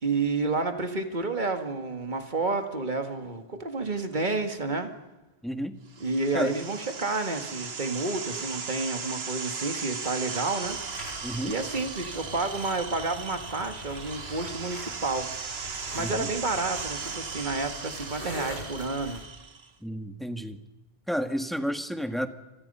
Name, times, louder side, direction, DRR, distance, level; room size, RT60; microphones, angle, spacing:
voice 1, 0.0-4.9 6.0-10.8 11.4-15.3 15.9-19.2, right 3 dB, 45° right, 6 dB, 2.2 m, -30 dB
voice 2, 5.4-5.8 6.3-6.5 11.2-11.5 16.0-16.3 19.8-20.6 21.1-22.3, equal, ahead, 7 dB, 1.6 m, -31 dB
sound 1, 5.9-19.7, right 5 dB, 70° right, 1.5 m, -37 dB
sound 2, 10.6-19.2, left 1 dB, 85° left, 6.6 m, -44 dB
29.5 x 26.0 x 5.6 m, 1.0 s
omnidirectional pair, 1.1 m